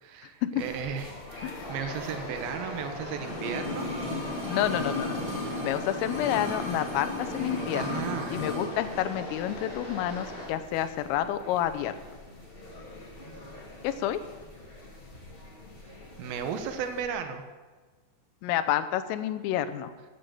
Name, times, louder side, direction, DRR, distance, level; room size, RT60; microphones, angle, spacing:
voice 1, 0.0-3.9 7.8-8.4 16.2-17.4, right 7 dB, 75° right, 6 dB, 2.2 m, -35 dB
sound 1, 0.6-17.1, left 1 dB, 30° left, 0.9 m, -46 dB
sound 2, 1.5-10.5, left 1 dB, 50° left, 7.9 m, -40 dB
sound 3, 3.2-8.7 9.0-9.1, left 2 dB, 25° right, 5.0 m, -34 dB
voice 2, 4.5-5.2 5.6-8.0 8.3-12.0 13.8-14.2 18.4-19.9, left 11 dB, 85° left, 11 dB, 3.4 m, -29 dB
16.0 x 8.8 x 7.8 m, 1.4 s
omnidirectional pair, 5.9 m